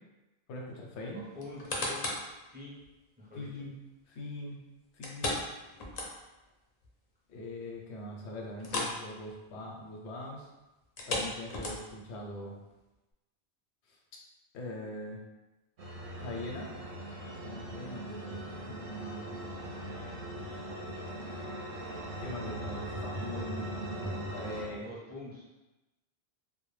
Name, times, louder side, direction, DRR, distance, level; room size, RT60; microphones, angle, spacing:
voice 1, 0.5-1.2 3.3-3.7 4.1-4.6 4.9-5.4 7.3-10.5 11.1-12.5 13.9-14.0 14.5-15.2 16.1-16.7 17.4-19.4 20.4-20.9 22.2-24.9, left 1 dB, 90° left, 0 dB, 0.9 m, -42 dB
voice 2, 1.1-2.8 3.2-3.5 19.5-20.3 24.7-25.4, left 2 dB, 10° right, -8 dB, 0.5 m, -47 dB
sound 1, 1.4-2.3 2.8-2.9 5.0-6.5 6.8-6.9 7.4-7.5 8.6-9.0 9.3-9.5 10.8-12.1 12.7-12.8, left 2 dB, 55° left, 0.4 m, -35 dB
sound 2, 15.8-24.7, right 1 dB, 60° right, 0.7 m, -40 dB
2.1 x 2.1 x 3.0 m, 1.0 s
omnidirectional pair, 1.1 m